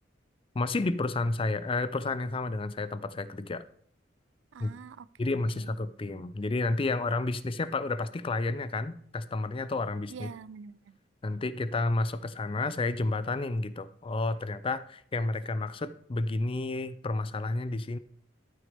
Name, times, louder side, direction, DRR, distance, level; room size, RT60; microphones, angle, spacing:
voice 1, 0.5-3.6 4.6-4.7 5.2-10.3 11.2-18.0, left 2 dB, 30° left, 0.4 m, -31 dB
voice 2, 4.5-5.7 10.1-11.0, right 6 dB, 75° right, 0.4 m, -46 dB
13.0 x 6.0 x 3.4 m
head